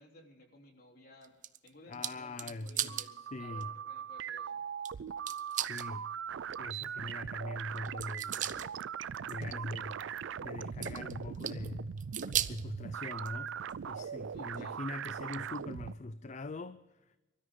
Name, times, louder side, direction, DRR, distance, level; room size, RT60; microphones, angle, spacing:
voice 1, 0.0-1.3 1.6-4.6 14.3-14.9, left 1 dB, 55° left, 3.5 m, -57 dB
sound 1, 1.2-3.1 3.6-3.7 4.8-4.9 5.3-5.9 7.7-8.7 9.1-9.4 10.8-11.7 12.0-12.6 13.2-14.1 14.5-14.6 15.5-15.6, right 11 dB, 45° right, 0.7 m, -37 dB
voice 2, 1.9-3.7 5.5-6.1 6.6-8.6 9.2-10.1 10.4-11.9 12.5-13.5 13.8-16.8 17.1-17.2, left 2 dB, 40° left, 0.5 m, -42 dB
sound 2, 2.7-15.9, right 8 dB, 90° right, 0.4 m, -40 dB
sound 3, 6.0-14.8, right 2 dB, 65° right, 3.8 m, -55 dB
25.0 x 13.0 x 3.8 m
head